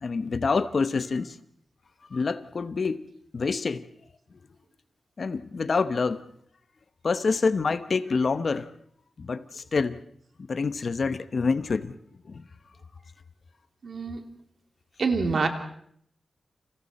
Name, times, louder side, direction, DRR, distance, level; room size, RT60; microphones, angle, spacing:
voice 1, 0.0-1.4 2.1-3.1 3.3-3.9 5.2-6.2 7.0-8.7 9.2-10.0 10.4-12.0 12.3-12.4, left 4 dB, 45° left, 0.9 m, -27 dB
voice 2, 13.8-14.2 15.0-15.5, right 4 dB, 55° right, 2.8 m, -26 dB
30.0 x 27.5 x 4.2 m
wide cardioid pair, 175°, 0 cm